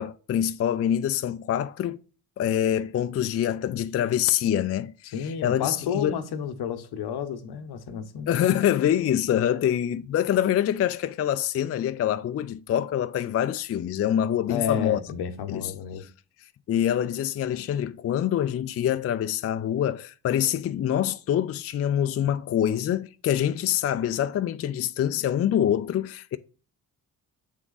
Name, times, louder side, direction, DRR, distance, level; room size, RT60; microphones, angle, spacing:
voice 1, 0.0-2.0 2.4-6.1 8.3-15.0 15.5-15.7 16.7-26.4, left 10 dB, 40° left, 0.4 m, -25 dB
voice 2, 5.1-8.3 9.5-9.6 14.5-16.1, left 7 dB, 70° left, 0.9 m, -31 dB
7.3 x 3.6 x 3.9 m
cardioid pair, 75°, 40 cm